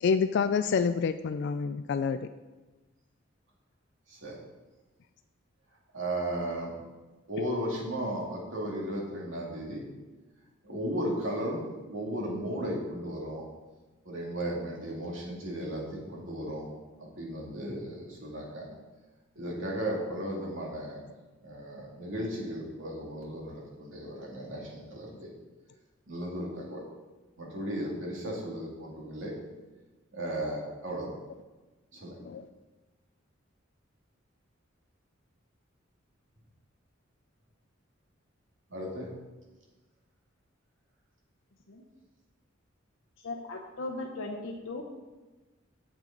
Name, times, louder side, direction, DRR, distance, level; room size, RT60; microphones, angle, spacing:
voice 1, 0.0-2.2 32.2-32.5, left 5 dB, 60° left, 10 dB, 0.3 m, -27 dB
voice 2, 4.1-4.4 5.9-6.7 7.3-9.8 10.6-11.6 11.9-13.4 14.0-16.7 17.0-18.7 19.4-21.0 21.4-25.3 26.1-26.8 27.4-29.3 30.1-31.1 31.9-32.2 38.7-39.1, right 1 dB, 70° right, -3 dB, 2.4 m, -35 dB
voice 3, 43.2-44.8, left 2 dB, 80° left, 1 dB, 0.8 m, -37 dB
8.9 x 7.4 x 3.9 m, 1.2 s
head